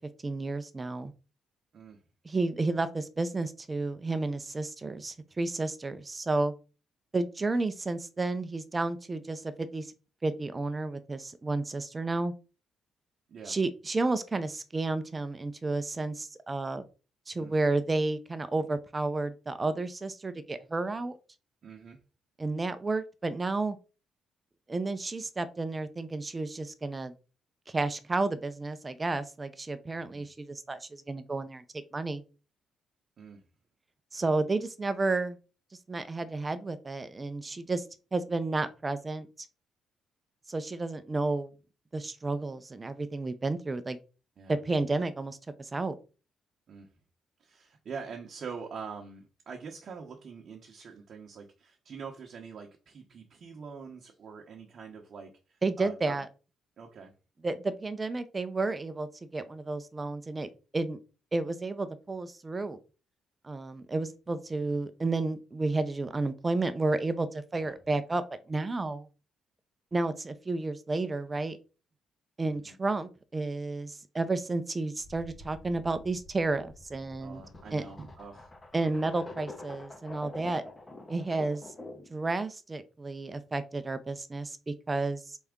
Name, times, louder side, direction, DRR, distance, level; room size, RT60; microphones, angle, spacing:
voice 1, 0.2-1.1 2.2-6.5 7.1-9.9 10.2-12.3 13.5-16.8 17.3-21.2 22.4-23.8 24.7-27.1 27.7-31.6 31.9-32.2 34.1-35.4 35.9-37.8 38.1-39.5 40.5-41.5 41.9-44.0 44.5-45.9 55.6-56.3 57.4-61.0 61.3-62.8 63.4-69.1 69.9-71.6 72.4-77.4 77.7-77.8 78.7-80.6 81.1-81.6 82.1-85.4, right 3 dB, 25° right, 0.6 m, -31 dB
voice 2, 21.6-22.0 29.9-30.3 33.2-33.4 44.4-44.6 46.7-46.9 47.4-56.2 56.8-57.1 67.6-67.8 72.5-72.8 77.2-78.5, right 5 dB, 55° right, 0.9 m, -44 dB
sound 1, 75.0-82.2, left 2 dB, 25° left, 1.2 m, -47 dB
4.1 x 3.5 x 3.6 m
cardioid pair, 90°, 0 cm